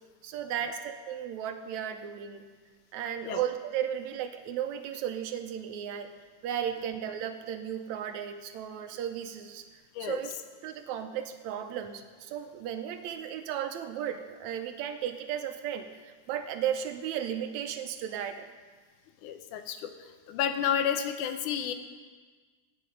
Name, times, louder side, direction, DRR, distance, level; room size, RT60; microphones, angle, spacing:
voice 1, 0.2-2.5 2.9-6.1 6.4-9.7 10.0-10.3 10.6-18.5, right 9 dB, 80° right, 7 dB, 1.9 m, -35 dB
voice 2, 19.2-19.9 20.3-21.7, left 9 dB, 85° left, 8 dB, 2.4 m, -30 dB
17.0 x 8.6 x 5.3 m, 1.5 s
omnidirectional pair, 3.5 m